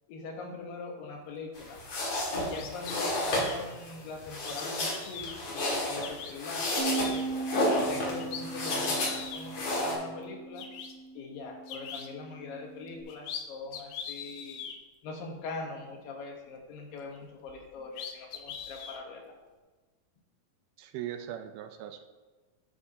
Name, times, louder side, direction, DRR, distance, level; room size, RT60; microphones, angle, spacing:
voice 1, 0.1-1.8 2.4-7.5 7.9-10.6 11.1-14.7 15.0-19.3, left 3 dB, 70° left, 1 dB, 2.7 m, -42 dB
sound 1, 1.6-9.9, left 1 dB, 50° left, 2.9 m, -32 dB
sound 2, 2.5-3.6 4.4-5.4 6.0-6.3 6.7-7.3 7.8-7.9 8.2-9.4 10.2-10.3 10.6-10.9 11.7-12.1 12.9-13.4 13.7-14.8 17.5-17.6 17.9-19.0, left 7 dB, 90° left, 2.8 m, -41 dB
Bass guitar, 6.8-13.0, right 4 dB, 55° right, 3.0 m, -39 dB
voice 2, 20.8-22.0, right 11 dB, 80° right, 8 dB, 2.5 m, -39 dB
11.5 x 8.1 x 2.8 m, 1.3 s
omnidirectional pair, 4.5 m